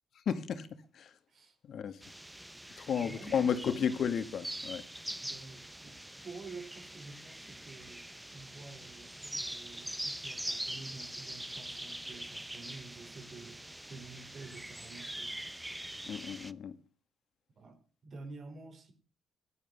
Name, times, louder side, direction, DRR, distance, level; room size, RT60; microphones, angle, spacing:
voice 1, 0.3-0.7 0.9-1.1 1.7-2.0 2.8-4.8 16.1-16.7, left 7 dB, 60° left, 2.0 m, -32 dB
sound 1, 2.0-16.5, right 1 dB, 5° right, 0.8 m, -43 dB
voice 2, 3.0-3.9 5.2-15.4 17.6-18.9, right 3 dB, 50° right, 5.1 m, -50 dB
16.5 x 12.5 x 6.8 m
cardioid pair, 115°, 0 cm